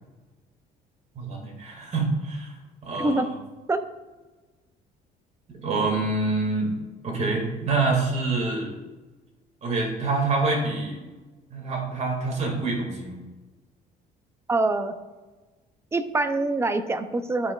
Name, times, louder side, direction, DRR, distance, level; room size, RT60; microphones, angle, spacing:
voice 1, 1.2-2.5 2.8-3.3 5.5-6.7 7.0-8.7 9.6-11.0 11.5-13.2, right 3 dB, 40° right, -1 dB, 2.2 m, -26 dB
voice 2, 14.5-14.9 15.9-17.5, right 2 dB, 15° right, 9 dB, 0.6 m, -24 dB
12.5 x 5.0 x 2.4 m, 1.2 s
cardioid pair, 110°, 17 cm